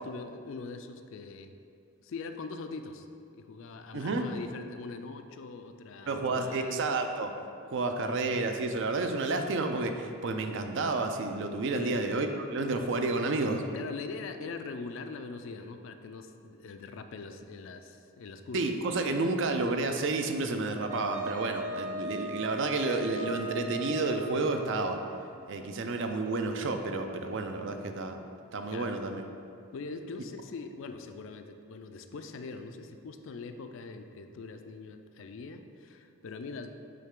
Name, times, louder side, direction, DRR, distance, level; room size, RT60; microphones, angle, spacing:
voice 1, 0.0-1.6 2.0-3.1 3.3-6.8 11.7-12.0 13.7-18.7 28.7-29.0 29.7-36.7, left 4 dB, 60° left, 7 dB, 0.3 m, -42 dB
voice 2, 3.9-4.3 6.1-7.3 7.7-13.6 18.5-25.0 25.5-28.2 28.5-29.2, right 3 dB, 55° right, 6 dB, 0.4 m, -30 dB
Wind instrument woodwind instrument, 20.9-25.3, right 1 dB, 35° right, 0.9 m, -38 dB
8.5 x 3.3 x 3.7 m, 2.4 s
head